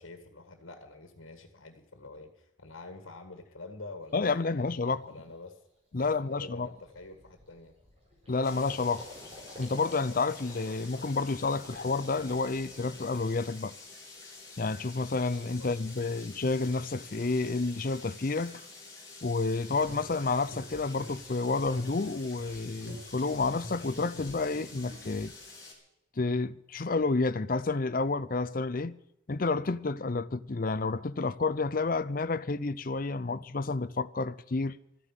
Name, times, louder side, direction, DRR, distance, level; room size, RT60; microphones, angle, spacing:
voice 1, 0.0-4.7 5.1-5.6 6.1-7.7 15.6-16.3, left 3 dB, 75° left, 1.8 m, -47 dB
voice 2, 4.1-5.1 5.9-6.7 8.3-9.1 9.6-13.7 14.6-18.6 19.2-25.3 26.2-29.0 29.3-34.8, left 3 dB, 45° left, 0.6 m, -30 dB
Gurgling, 4.1-4.2 4.7-4.9 5.3-5.5 5.7-13.8 14.1-14.8, left 1 dB, 30° right, 5.0 m, -51 dB
sound 1, 8.4-25.7, left 3 dB, 15° left, 4.1 m, -49 dB
sound 2, 19.7-25.2, equal, 60° right, 7.6 m, -47 dB
13.5 x 10.0 x 9.0 m
head